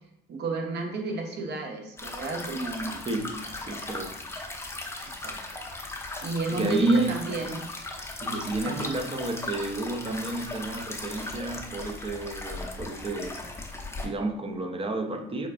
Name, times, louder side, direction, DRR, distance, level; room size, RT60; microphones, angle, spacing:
voice 1, 0.3-3.1 3.7-3.8 5.2-5.4 6.2-7.6 8.6-9.0, right 3 dB, 55° right, 2 dB, 0.7 m, -31 dB
sound 1, 2.0-14.1, left 2 dB, 15° left, 0.6 m, -37 dB
voice 2, 3.0-4.2 6.5-7.3 8.2-13.5 14.0-15.5, right 2 dB, 25° right, 5 dB, 0.5 m, -31 dB
4.5 x 2.2 x 2.4 m, 0.73 s
hypercardioid pair, 60°, 20 cm